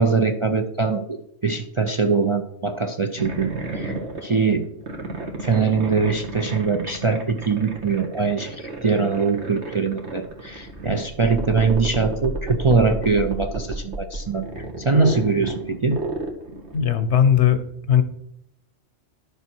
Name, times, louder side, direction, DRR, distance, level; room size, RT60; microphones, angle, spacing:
voice 1, 0.0-4.7 5.4-16.0, right 4 dB, 35° right, 4 dB, 0.5 m, -22 dB
sound 1, 3.2-17.0, right 2 dB, 75° right, 1.9 m, -32 dB
voice 2, 16.7-17.6 17.9-18.0, left 9 dB, 75° left, 11 dB, 1.2 m, -17 dB
11.5 x 6.9 x 4.5 m, 0.77 s
omnidirectional pair, 1.2 m